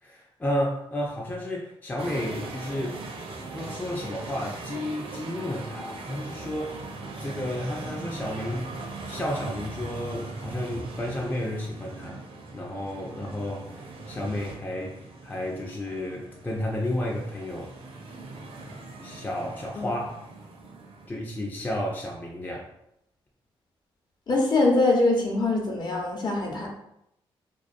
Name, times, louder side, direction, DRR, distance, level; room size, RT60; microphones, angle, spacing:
voice 1, 0.0-3.0 3.5-6.7 7.2-8.7 9.0-12.2 12.5-17.7 18.6-20.2 21.1-22.7, left 1 dB, 15° left, -2 dB, 0.4 m, -32 dB
sound 1, 2.0-21.1, right 3 dB, 65° right, 0.5 m, -40 dB
voice 2, 24.3-26.7, left 2 dB, 45° left, -1 dB, 0.8 m, -23 dB
2.3 x 2.2 x 2.5 m, 0.80 s
cardioid pair, 65°, 10 cm